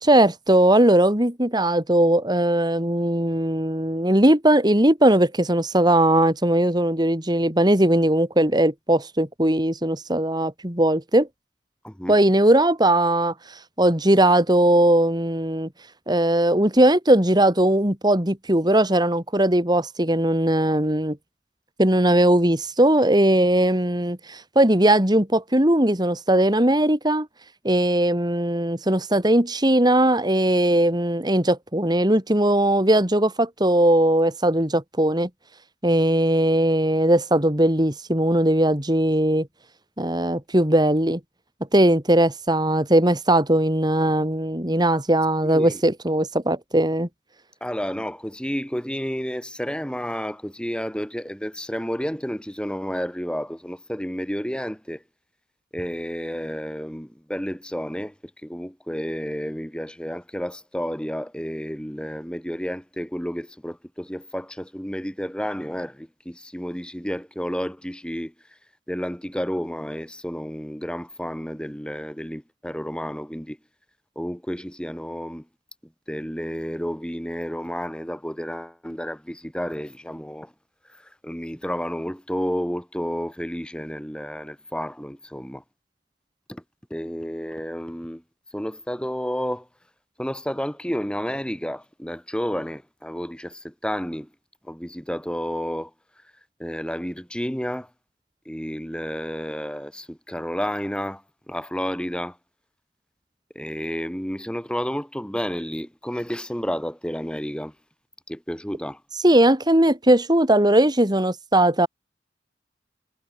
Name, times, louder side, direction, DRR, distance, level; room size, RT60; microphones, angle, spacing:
voice 1, 0.0-11.3 12.1-15.7 16.1-21.2 21.8-27.3 27.6-35.3 35.8-39.5 40.0-41.2 41.7-47.1 109.1-111.9, right 1 dB, 25° right, 3.9 m, -19 dB
voice 2, 11.8-12.1 45.4-45.7 47.6-55.0 55.7-58.1 58.4-68.3 68.9-73.6 74.2-75.4 76.1-80.5 81.2-85.6 86.5-86.6 86.9-88.2 88.5-89.6 90.2-93.5 93.8-94.3 94.7-95.9 96.6-97.9 98.5-101.2 101.5-102.3 103.5-107.7 108.3-109.0, equal, 5° left, 4.6 m, -31 dB
head